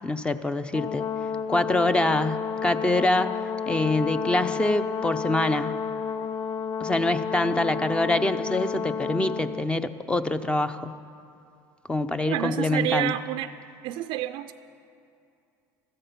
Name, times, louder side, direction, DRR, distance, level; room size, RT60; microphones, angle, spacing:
voice 1, 0.0-1.1 1.5-3.3 3.7-5.7 6.8-10.9 11.9-13.1, left 2 dB, 10° left, 11 dB, 0.7 m, -25 dB
Brass instrument, 0.7-9.7, left 6 dB, 80° left, 0.6 m, -31 dB
voice 2, 12.3-13.5 13.8-14.5, right 13 dB, 70° right, 9 dB, 0.5 m, -29 dB
16.5 x 14.0 x 5.9 m, 2.5 s
supercardioid pair, 95°, 9 cm